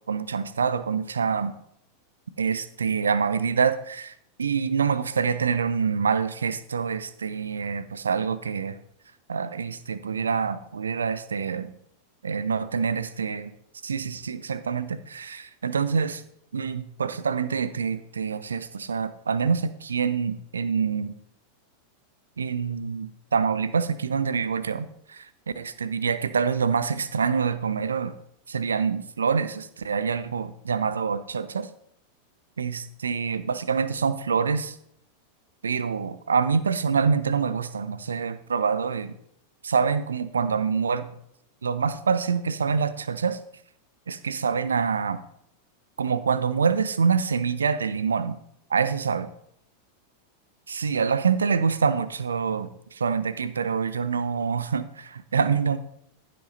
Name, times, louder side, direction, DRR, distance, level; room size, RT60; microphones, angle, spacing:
voice 1, 0.1-1.5 2.4-8.8 9.3-11.7 12.2-13.5 13.8-16.2 16.5-21.1 22.4-25.3 25.5-28.1 28.5-31.7 32.6-34.8 35.6-39.1 39.6-41.1 41.6-43.4 44.1-45.2 46.0-48.4 48.7-49.3 50.7-55.8, right 6 dB, 70° right, 14 dB, 0.7 m, -26 dB
15.0 x 7.8 x 4.0 m, 0.72 s
figure-of-eight pair, 90°, 0 cm